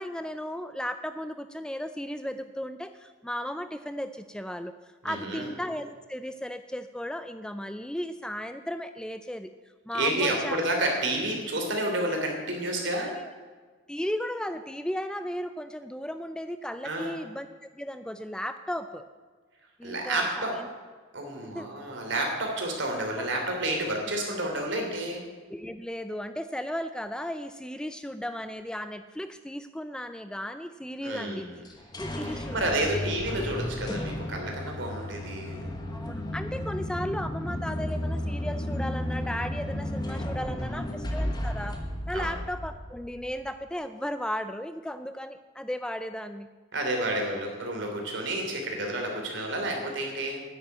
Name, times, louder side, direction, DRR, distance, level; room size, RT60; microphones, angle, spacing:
voice 1, 0.0-4.7 5.0-9.5 9.9-10.6 13.0-13.3 13.9-17.5 17.7-19.0 19.8-20.5 21.5-21.7 23.2-23.3 25.5-31.5 32.0-33.1 33.9-34.0 35.9-41.8 42.1-46.5, equal, 5° left, 10 dB, 0.4 m, -35 dB
voice 2, 5.0-5.5 9.9-13.1 16.8-17.2 19.8-20.5 21.1-25.2 31.0-31.5 32.2-35.7 40.5-40.9 42.1-42.3 46.7-50.4, right 1 dB, 65° right, 2 dB, 3.2 m, -30 dB
sound 1, 31.7-43.3, left 1 dB, 20° left, 1.3 m, -33 dB
10.5 x 8.4 x 9.3 m, 1.4 s
head